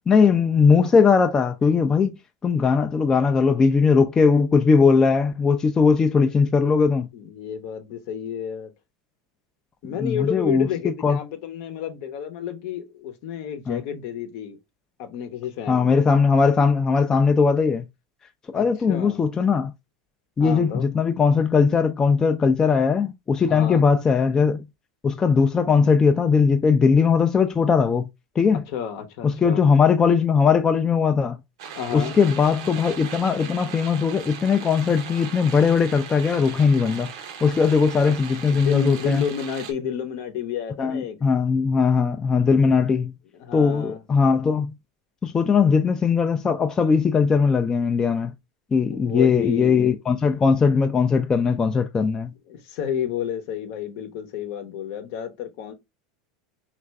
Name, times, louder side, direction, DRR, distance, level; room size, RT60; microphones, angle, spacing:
voice 1, 0.1-7.1 9.8-11.2 13.7-13.8 15.7-17.9 18.5-19.7 20.4-24.7 25.0-28.1 28.4-28.6 29.2-31.4 31.9-37.1 37.4-39.2 40.8-43.1 43.5-44.7 45.2-48.3 48.7-52.3, left 5 dB, 20° left, 0.4 m, -19 dB
voice 2, 7.1-8.7 9.8-14.6 15.0-16.1 18.5-19.2 20.4-20.8 23.4-23.8 28.7-29.6 31.7-32.2 38.0-38.1 38.4-41.2 42.7-42.8 43.4-44.0 48.9-50.0 52.5-55.7, left 8 dB, 60° left, 0.8 m, -31 dB
sound 1, 31.6-39.7, right 8 dB, 70° right, 0.7 m, -38 dB
3.2 x 2.5 x 3.3 m
hypercardioid pair, 100°, 3 cm